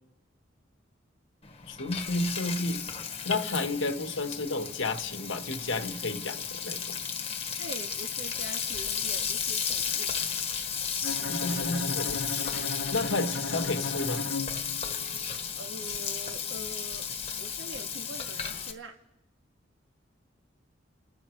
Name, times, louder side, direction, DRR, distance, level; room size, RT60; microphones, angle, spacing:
Frying (food), 1.4-18.7, left 7 dB, 30° left, 1.3 m, -34 dB
voice 1, 1.7-2.8 3.2-7.0 11.3-12.4 12.9-14.2, left 2 dB, 85° left, 6 dB, 1.4 m, -31 dB
voice 2, 7.6-10.1 15.6-17.1 17.4-19.0, right 1 dB, 85° right, 3 dB, 1.9 m, -44 dB
Bowed string instrument, 11.0-15.2, left 3 dB, 55° left, 0.8 m, -36 dB
30.0 x 15.0 x 3.2 m, 0.87 s
head